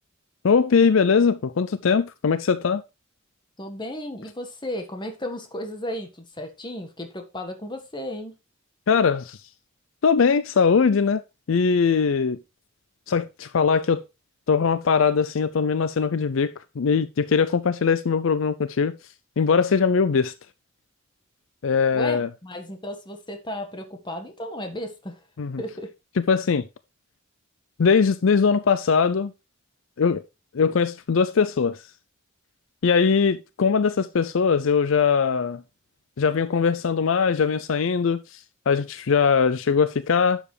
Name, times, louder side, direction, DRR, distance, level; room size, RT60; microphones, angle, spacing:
voice 1, 0.4-2.8 8.9-9.4 10.0-11.2 11.5-12.4 13.1-14.0 14.5-18.9 19.4-20.3 21.6-22.3 25.4-25.6 26.3-26.7 27.8-29.3 30.0-30.2 30.5-31.8 32.8-35.6 36.2-40.4, left 5 dB, 65° left, 0.5 m, -21 dB
voice 2, 3.6-8.3 21.9-25.2 25.6-25.9, left 1 dB, 20° left, 1.6 m, -34 dB
11.0 x 7.2 x 3.4 m
head